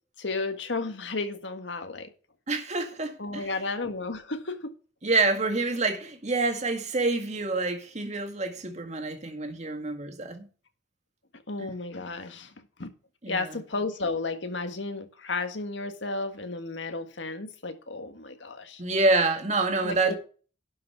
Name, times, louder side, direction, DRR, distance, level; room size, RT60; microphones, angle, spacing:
voice 1, 0.2-2.1 3.2-4.7 11.5-12.5 12.8-12.9 13.3-18.8 19.8-20.2, left 3 dB, 80° left, 1.7 m, -33 dB
voice 2, 2.5-3.5 5.0-10.5 11.6-11.7 13.2-13.6 18.8-20.2, right 3 dB, 40° right, 1.9 m, -27 dB
11.5 x 5.8 x 5.8 m
head